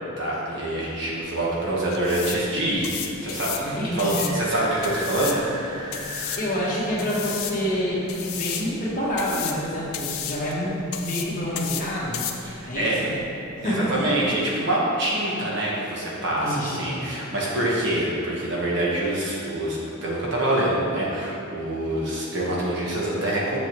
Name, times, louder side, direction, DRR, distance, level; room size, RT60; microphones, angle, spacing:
voice 1, 0.2-5.4 6.1-6.4 12.4-13.1 13.6-23.6, right 1 dB, 55° right, -5 dB, 1.4 m, -26 dB
sound 1, 1.0-14.4, left 9 dB, 75° left, 0.6 m, -35 dB
sound 2, 3.3-10.6, right 1 dB, 20° right, 0.7 m, -39 dB
voice 2, 3.6-4.3 5.9-12.3 12.7-13.2 13.6-14.1 16.4-17.0, equal, 35° left, -7 dB, 1.6 m, -28 dB
7.2 x 7.0 x 3.2 m, 2.7 s
head